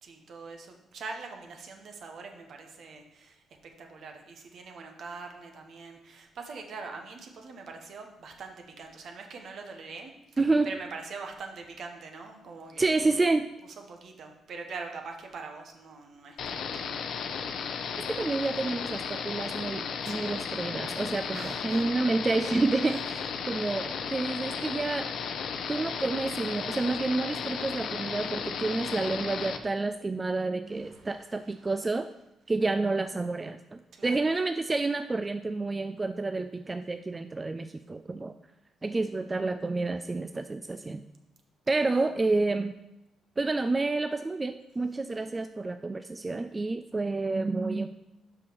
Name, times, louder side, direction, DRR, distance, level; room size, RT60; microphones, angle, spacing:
voice 1, 0.0-13.1 13.9-16.9 17.3-17.4 20.0-20.4 21.3-21.9 22.9-23.0 24.5-24.7 30.7-31.3 33.9-34.2 41.7-42.0, right 4 dB, 60° right, 4 dB, 1.2 m, -43 dB
voice 2, 10.4-10.7 12.8-13.5 18.0-25.1 25.7-32.1 32.5-38.3 38.8-41.0 41.7-42.7 43.4-47.9, right 3 dB, 25° right, 9 dB, 0.3 m, -29 dB
sound 1, 16.4-29.6, left 6 dB, 70° left, 0.6 m, -34 dB
5.5 x 5.2 x 6.3 m, 0.92 s
cardioid pair, 80°, 0 cm